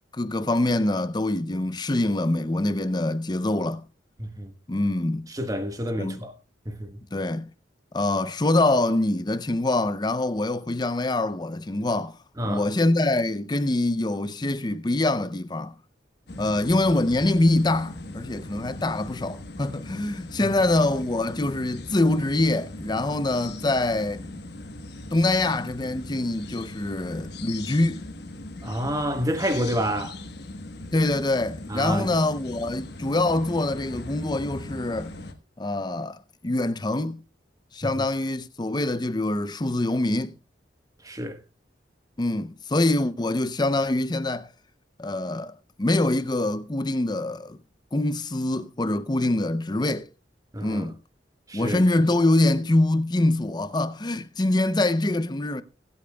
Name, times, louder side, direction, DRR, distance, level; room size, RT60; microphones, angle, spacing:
voice 1, 0.1-3.8 4.7-5.2 6.0-6.2 7.1-7.5 7.9-12.1 12.4-15.7 16.4-24.2 25.1-28.0 30.9-35.1 35.6-36.2 36.4-37.2 37.7-40.3 42.2-44.5 45.0-45.5 45.8-47.6 47.9-50.1 50.6-50.9 51.5-55.6, left 2 dB, 25° left, 0.6 m, -24 dB
voice 2, 4.2-4.5 5.3-6.3 6.6-7.0 12.4-12.7 16.3-16.5 20.4-20.5 28.6-30.2 31.7-32.1 37.8-38.0 41.0-41.4 50.5-50.9 51.5-51.8, equal, 20° right, 1.2 m, -29 dB
sound 1, 16.3-35.3, left 2 dB, 60° left, 1.2 m, -39 dB
23.5 x 8.5 x 2.3 m
head